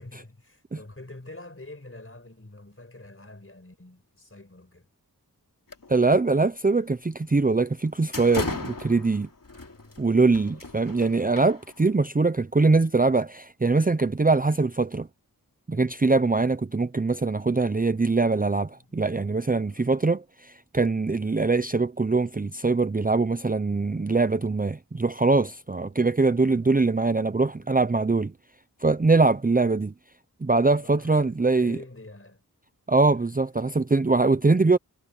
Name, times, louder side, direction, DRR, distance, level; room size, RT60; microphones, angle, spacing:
voice 1, 0.0-4.9 9.5-10.0 10.3-10.7 18.7-19.1 19.6-19.9 25.8-26.0 26.4-26.7 27.5-27.7 30.8-32.4, left 2 dB, 35° left, 5.5 m, -47 dB
sound 1, 5.7-6.2 6.5-6.7 7.3-7.4 7.8-12.0, left 3 dB, 60° left, 2.9 m, -37 dB
voice 2, 5.9-9.3 10.0-15.1 15.7-28.3 28.8-29.9 30.4-31.8 32.9-34.8, right 3 dB, 25° right, 0.6 m, -22 dB
wide cardioid pair, 55°, 37 cm